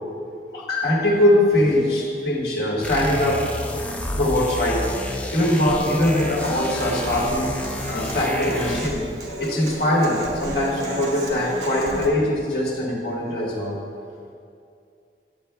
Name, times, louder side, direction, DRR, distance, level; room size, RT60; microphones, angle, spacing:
voice 1, 0.5-3.4 4.1-4.8 5.3-7.5 7.9-9.1 9.4-13.8, left 1 dB, 60° left, -4 dB, 1.4 m, -22 dB
sound 1, 2.8-9.1, left 1 dB, 10° left, 0.3 m, -30 dB
Human voice / Acoustic guitar, 5.7-12.1, right 1 dB, 70° right, 1.0 m, -34 dB
8.7 x 8.5 x 2.2 m, 2.4 s
head